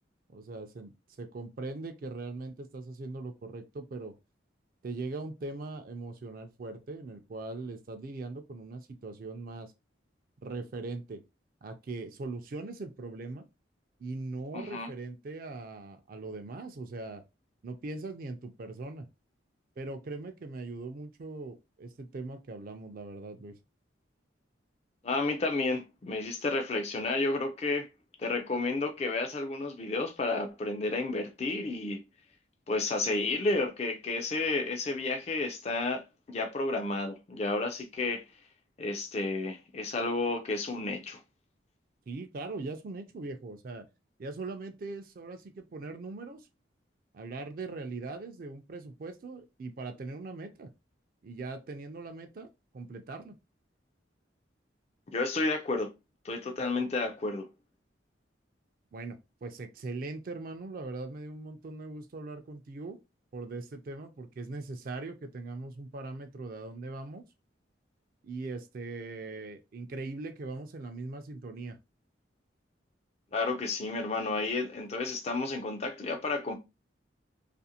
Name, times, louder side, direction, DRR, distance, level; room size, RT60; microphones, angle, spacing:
voice 1, 0.3-0.9 1.2-4.1 4.8-9.7 10.4-11.2 11.6-13.5 14.0-17.2 17.6-19.1 19.8-23.6 42.1-43.9 44.2-46.5 47.1-50.7 51.2-52.5 52.7-53.3 58.9-63.0 63.3-67.2 68.2-71.8, right 3 dB, 50° right, 0.4 m, -40 dB
voice 2, 14.5-14.9 25.0-27.9 28.2-32.0 32.7-38.3 38.8-41.2 55.1-55.9 56.2-57.5 73.3-76.6, left 3 dB, 35° left, 0.3 m, -31 dB
2.5 x 2.4 x 2.7 m
head